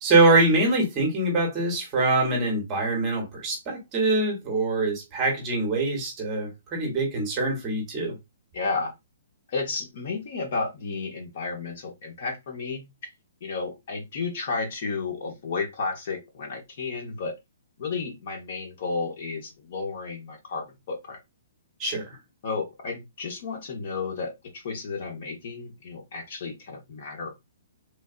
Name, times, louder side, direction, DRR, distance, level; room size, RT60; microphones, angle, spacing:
voice 1, 0.0-8.1 21.8-22.2, right 2 dB, 20° right, 1.0 m, -24 dB
voice 2, 8.5-8.9 9.5-12.8 13.4-17.3 17.8-21.2 22.4-27.4, left 4 dB, 40° left, 0.9 m, -32 dB
3.3 x 2.4 x 2.4 m
hypercardioid pair, 175°, 0 cm